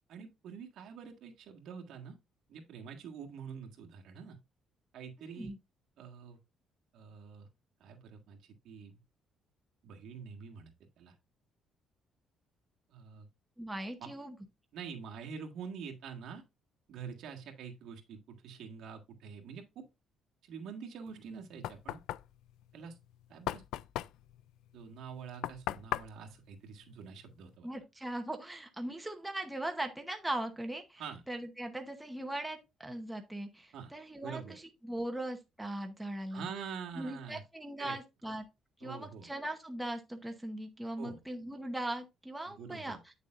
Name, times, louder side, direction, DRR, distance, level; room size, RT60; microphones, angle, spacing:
voice 1, 0.1-2.2 2.5-4.4 4.9-5.5 6.0-6.4 6.9-7.5 7.8-9.0 9.8-11.1 12.9-13.3 14.0-14.1 14.7-16.4 16.9-19.9 20.4-22.0 22.7-23.0 23.3-23.6 24.7-27.7 31.0-31.2 33.7-33.9 34.2-34.6 36.3-37.4 37.8-38.0 38.8-39.3 41.0-41.2 42.5-43.0, right 6 dB, 65° right, 1.7 m, -46 dB
voice 2, 13.6-14.4 27.6-36.5 37.0-38.4 38.8-43.1, right 1 dB, 5° right, 0.9 m, -39 dB
Knock, 21.1-27.6, left 13 dB, 90° left, 0.3 m, -40 dB
8.9 x 6.7 x 2.5 m
cardioid pair, 150°, 0 cm